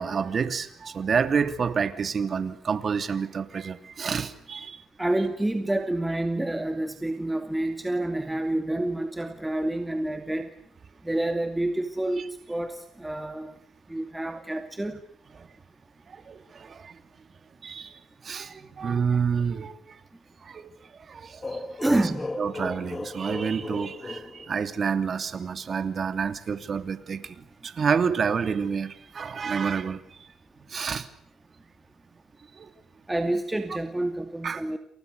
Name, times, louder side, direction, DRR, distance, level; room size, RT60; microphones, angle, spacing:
voice 1, 0.0-4.8 12.2-12.3 15.4-15.5 16.1-16.9 17.6-20.0 20.4-20.7 21.1-22.1 22.4-30.3 30.7-31.1 32.6-32.7 34.4-34.6, right 6 dB, 45° right, 2.9 m, -29 dB
voice 2, 5.0-10.5 11.0-13.5 13.9-15.0 21.8-22.3 33.1-34.8, right 1 dB, 10° right, 2.4 m, -28 dB
sound 1, 21.4-25.1, left 3 dB, 25° left, 2.2 m, -37 dB
29.0 x 28.5 x 6.8 m
cardioid pair, 90°, 0 cm